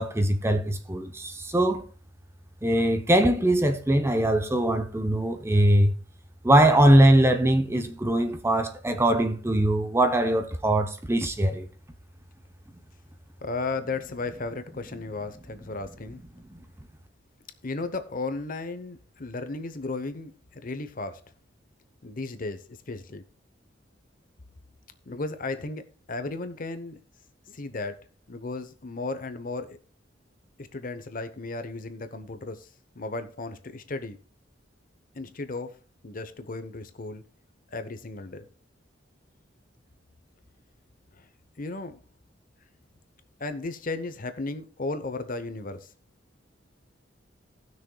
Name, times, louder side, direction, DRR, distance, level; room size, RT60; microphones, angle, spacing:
voice 1, 0.0-1.8 2.6-5.9 6.4-11.7, right 1 dB, 15° right, 0.7 m, -21 dB
voice 2, 13.4-16.2 17.6-21.2 22.0-23.2 25.1-25.8 26.1-27.0 27.5-29.8 30.6-32.7 33.0-34.2 35.1-35.8 36.0-37.2 37.7-38.5 41.2-41.3 41.6-42.0 43.4-45.9, left 3 dB, 45° left, 0.8 m, -35 dB
18.5 x 6.3 x 2.3 m
head